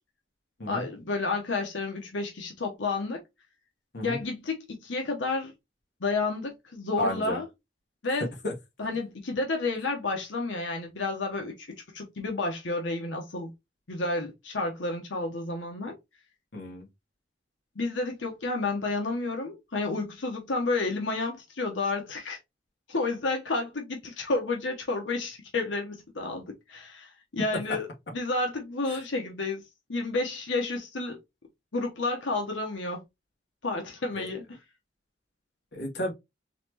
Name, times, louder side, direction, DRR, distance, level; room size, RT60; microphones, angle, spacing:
voice 1, 0.7-3.2 4.0-5.5 6.0-7.4 8.0-8.3 8.8-11.7 11.9-13.5 13.9-15.9 17.8-22.4 22.9-27.9 28.1-29.6 29.9-31.2 31.7-33.0 33.6-34.6, left 3 dB, 85° left, 1.0 m, -31 dB
voice 2, 7.0-7.4 8.4-8.5 16.5-16.9 35.7-36.1, equal, 65° left, 1.2 m, -32 dB
4.1 x 3.0 x 2.8 m
head